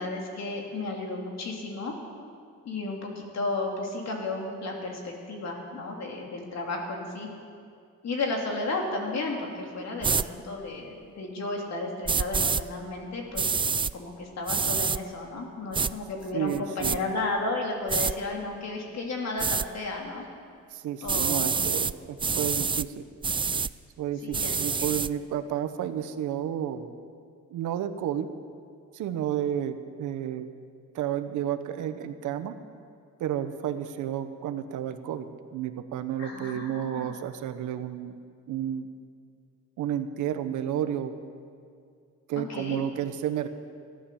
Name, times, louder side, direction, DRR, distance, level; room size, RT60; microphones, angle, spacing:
voice 1, 0.0-1.9 2.6-7.3 8.0-13.6 13.9-20.3 21.0-21.5 24.2-24.5 24.8-24.9 36.2-37.1 42.5-42.8, left 2 dB, 60° left, 0 dB, 3.2 m, -33 dB
sound 1, 10.0-10.3 12.1-12.6 13.4-13.9 14.5-15.0 15.7-15.9 16.5-17.0 17.9-18.1 19.4-19.7 21.1-21.9 22.2-22.9 23.2-23.7 24.3-25.1, right 5 dB, 15° right, 0.3 m, -26 dB
voice 2, 16.3-17.0 20.7-23.0 24.0-26.9 27.5-28.3 28.9-30.5 30.9-32.5 33.2-35.3 35.5-38.2 38.5-38.9 39.8-41.2 42.3-43.5, right 10 dB, 80° right, 9 dB, 1.0 m, -31 dB
15.0 x 11.5 x 7.1 m, 2.3 s
cardioid pair, 90°, 30 cm